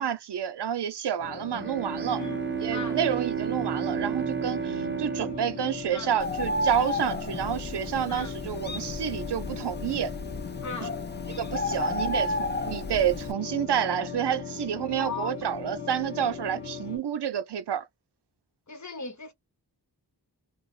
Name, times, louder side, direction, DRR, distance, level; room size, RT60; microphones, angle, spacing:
voice 1, 0.0-2.2 2.6-10.1 10.8-10.9 11.4-17.8, right 9 dB, 80° right, 0.6 m, -29 dB
sound 1, 1.2-17.0, left 6 dB, 75° left, 1.4 m, -38 dB
Bowed string instrument, 1.5-6.7, right 8 dB, 30° right, 0.4 m, -32 dB
Bird, 6.2-13.3, left 1 dB, 25° left, 0.5 m, -32 dB
voice 2, 10.6-10.9 15.0-15.3 18.7-19.3, left 4 dB, 45° left, 1.0 m, -37 dB
2.4 x 2.0 x 3.1 m
wide cardioid pair, 55°, 41 cm